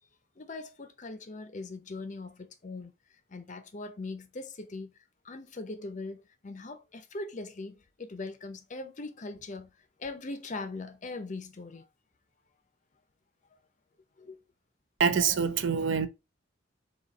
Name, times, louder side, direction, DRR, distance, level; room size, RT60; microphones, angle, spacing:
voice 1, 0.4-5.0 5.2-11.9 14.2-14.4, left 3 dB, 40° left, 0.6 m, -41 dB
voice 2, 15.0-16.1, right 6 dB, 65° right, 0.5 m, -25 dB
4.1 x 2.8 x 3.9 m
head